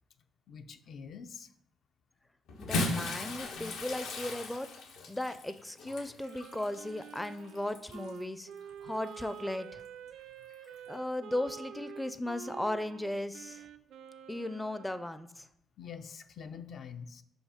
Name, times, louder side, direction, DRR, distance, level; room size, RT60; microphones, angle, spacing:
voice 1, 0.5-1.5 14.4-14.5 15.8-17.2, left 6 dB, 60° left, 9 dB, 0.5 m, -45 dB
Bathtub (filling or washing) / Splash splatter, 2.5-8.2 9.1-9.2 10.7-10.8, left 2 dB, 85° left, 1.2 m, -37 dB
voice 2, 2.6-4.7 5.1-8.5 8.8-9.8 10.9-13.6 14.3-15.5, left 1 dB, 10° left, 11 dB, 0.4 m, -36 dB
Wind instrument woodwind instrument, 6.2-15.1, right 9 dB, 80° right, 0.5 m, -48 dB
5.4 x 5.2 x 5.0 m, 0.77 s
cardioid pair, 90°, 0 cm